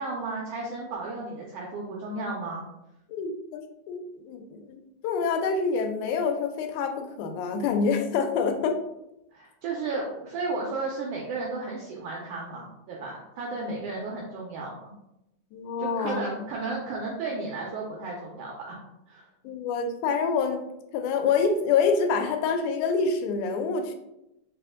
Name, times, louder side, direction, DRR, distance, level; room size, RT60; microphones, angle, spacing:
voice 1, 0.0-2.6 9.3-14.8 15.8-18.7 19.1-19.2, right 3 dB, 80° right, -2 dB, 1.4 m, -33 dB
voice 2, 3.1-4.8 5.0-8.8 13.7-13.8 15.5-16.2 19.4-20.7 20.9-23.9, left 5 dB, 90° left, 6 dB, 2.0 m, -26 dB
4.2 x 3.0 x 3.5 m, 0.87 s
omnidirectional pair, 3.4 m